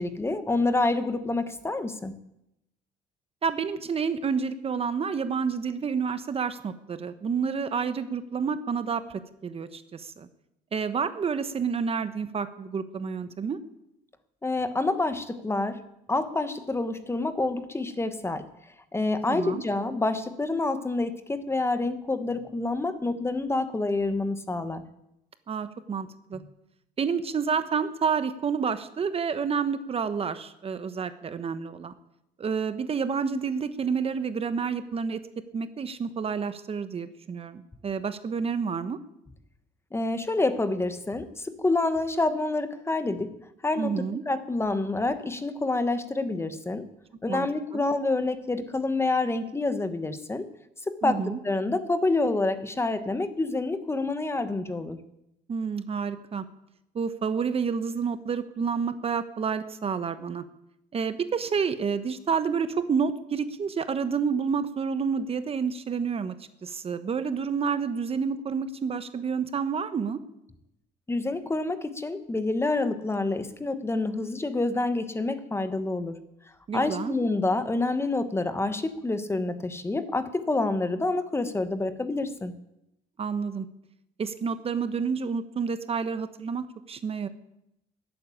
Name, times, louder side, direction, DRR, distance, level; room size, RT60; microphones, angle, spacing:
voice 1, 0.0-2.1 14.4-15.8 16.1-18.5 18.9-24.8 26.3-26.4 39.9-43.4 43.6-46.9 47.2-50.5 50.9-55.0 71.1-76.2 76.7-82.5, left 2 dB, 15° left, 11 dB, 1.2 m, -27 dB
voice 2, 3.4-10.3 10.7-13.6 19.3-19.6 25.5-26.4 27.0-31.9 32.4-35.2 35.5-39.0 43.8-44.2 47.3-47.5 47.7-47.8 51.0-51.4 55.5-56.4 56.9-60.4 60.9-66.3 66.6-70.2 76.7-77.1 83.2-83.7 84.2-87.3, right 6 dB, 35° right, 11 dB, 1.0 m, -29 dB
14.0 x 9.0 x 9.9 m, 0.84 s
cardioid pair, 110°, 17 cm